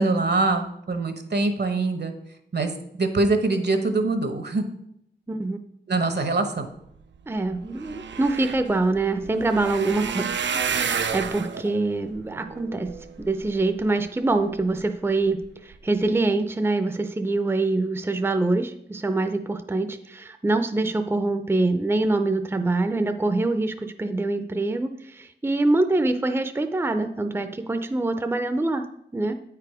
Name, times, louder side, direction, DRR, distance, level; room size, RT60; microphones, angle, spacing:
voice 1, 0.0-2.1 2.5-4.6 5.9-6.7, right 3 dB, 65° right, 7 dB, 1.0 m, -24 dB
voice 2, 5.3-5.6 7.3-12.9 13.3-28.9 29.1-29.3, right 2 dB, 15° right, 8 dB, 0.5 m, -25 dB
sound 1, 7.1-7.2 7.5-13.8 14.4-14.8 15.3-15.5 15.7-15.8, right 6 dB, 85° right, 0.5 m, -31 dB
9.0 x 4.8 x 4.8 m, 0.74 s
wide cardioid pair, 85°, 18 cm